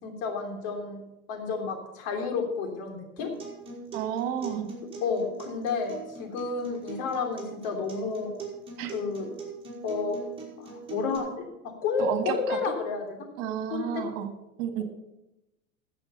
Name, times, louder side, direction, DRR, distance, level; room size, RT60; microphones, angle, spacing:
voice 1, 0.0-1.0 1.3-3.3 5.0-8.3 8.8-9.3 9.8-10.2 10.6-11.5 11.8-13.2 13.7-14.0, left 5 dB, 55° left, 3 dB, 3.3 m, -31 dB
Acoustic guitar, 3.2-11.2, right 4 dB, 10° right, 4.6 m, -42 dB
voice 2, 3.9-4.7 8.8-8.9 12.0-12.7 13.4-14.3 14.6-14.8, right 9 dB, 55° right, 8 dB, 1.8 m, -31 dB
14.0 x 7.6 x 5.6 m, 0.91 s
hypercardioid pair, 95°, 43 cm